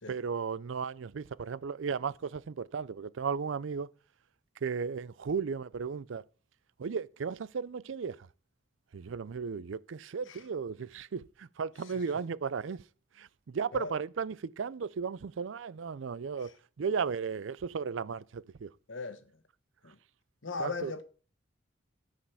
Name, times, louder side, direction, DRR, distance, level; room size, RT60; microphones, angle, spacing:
voice 1, 0.1-3.9 4.6-6.2 6.8-8.3 8.9-12.8 13.2-18.7 20.6-20.9, right 6 dB, 85° right, 0.5 m, -35 dB
voice 2, 18.9-19.2 19.8-20.0 20.4-21.0, left 4 dB, 90° left, 1.3 m, -37 dB
13.0 x 5.1 x 7.0 m
head